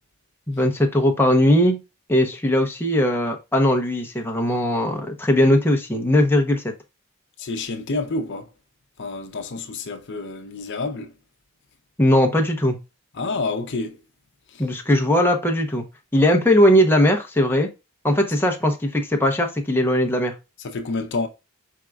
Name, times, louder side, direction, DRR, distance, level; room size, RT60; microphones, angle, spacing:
voice 1, 0.5-1.8 2.1-6.7 12.0-12.8 14.6-15.8 16.1-17.7 18.0-20.3, left 1 dB, 10° left, 0.7 m, -19 dB
voice 2, 7.4-8.5 9.0-11.1 13.1-14.0 14.5-14.7 20.6-21.3, left 3 dB, 60° left, 0.7 m, -28 dB
4.7 x 3.7 x 2.2 m
head